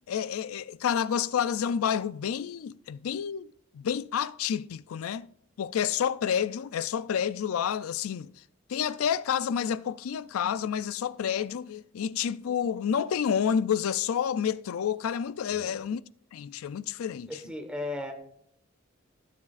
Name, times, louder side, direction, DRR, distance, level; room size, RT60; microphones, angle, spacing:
voice 1, 0.1-5.3 5.6-8.3 8.7-16.0 16.3-17.3, left 8 dB, 90° left, 0.4 m, -29 dB
voice 2, 17.3-18.1, left 2 dB, 5° right, 1.3 m, -36 dB
16.0 x 7.2 x 2.5 m
head